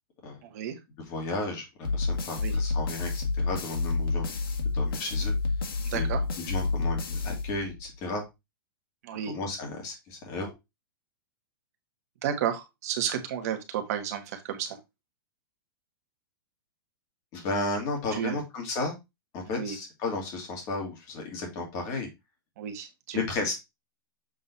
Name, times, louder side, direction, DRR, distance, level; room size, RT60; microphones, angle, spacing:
voice 1, 0.4-0.8 2.4-2.5 5.8-6.2 9.0-9.3 12.2-14.8 18.1-18.4 19.5-19.8 22.6-23.2, right 9 dB, 45° right, 5 dB, 1.5 m, -32 dB
voice 2, 1.1-1.7 1.9-4.3 4.7-5.3 5.9-6.1 6.4-8.2 9.3-10.5 17.3-19.0 19.3-22.1 23.1-23.5, left 3 dB, 25° left, 1 dB, 2.4 m, -33 dB
sound 1, 1.8-8.0, left 3 dB, 75° left, 1.8 m, -29 dB
7.5 x 3.8 x 4.1 m, 0.22 s
supercardioid pair, 170°, 12 cm